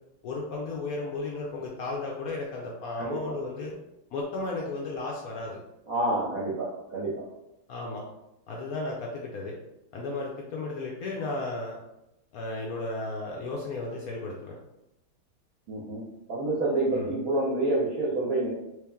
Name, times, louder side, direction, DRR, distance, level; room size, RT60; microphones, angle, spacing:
voice 1, 0.2-3.7 4.1-5.6 7.7-8.0 8.5-9.5 9.9-11.8 12.3-14.6 16.9-17.1, left 2 dB, 85° left, -2 dB, 0.8 m, -34 dB
voice 2, 5.9-7.2 15.7-16.0 16.3-18.5, right 2 dB, 65° right, -5 dB, 0.9 m, -28 dB
3.2 x 2.9 x 3.4 m, 0.90 s
omnidirectional pair, 2.2 m